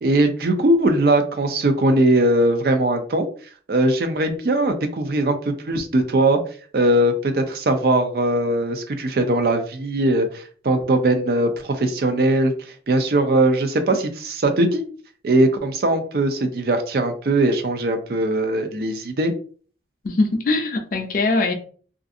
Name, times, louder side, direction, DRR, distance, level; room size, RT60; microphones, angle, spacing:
voice 1, 0.0-3.3 3.7-6.4 6.7-12.5 12.9-14.8 15.2-19.3, right 1 dB, 55° right, 0.4 m, -20 dB
voice 2, 20.0-21.5, left 3 dB, 50° left, 0.4 m, -21 dB
2.5 x 2.4 x 2.5 m
head